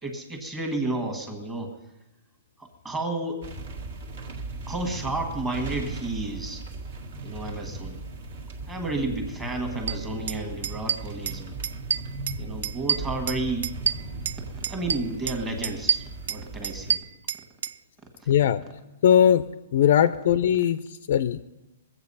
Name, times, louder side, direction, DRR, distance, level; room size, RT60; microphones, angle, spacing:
voice 1, 0.0-1.7 2.6-3.5 4.7-6.6 7.2-8.0 8.7-11.6 12.4-13.7 14.7-17.0, right 2 dB, 10° right, 3 dB, 1.5 m, -31 dB
sound 1, 3.4-17.0, right 3 dB, 50° right, 1.7 m, -37 dB
sound 2, 9.9-10.0 10.3-10.4 10.6-11.4 11.6-12.4 12.6-14.4 14.6-15.4 15.6-17.7, right 7 dB, 65° right, 0.4 m, -27 dB
voice 2, 18.3-18.6 19.0-19.4 19.7-21.4, left 9 dB, 50° left, 14 dB, 0.4 m, -20 dB
21.5 x 8.1 x 5.5 m, 0.97 s
hypercardioid pair, 175°, 0 cm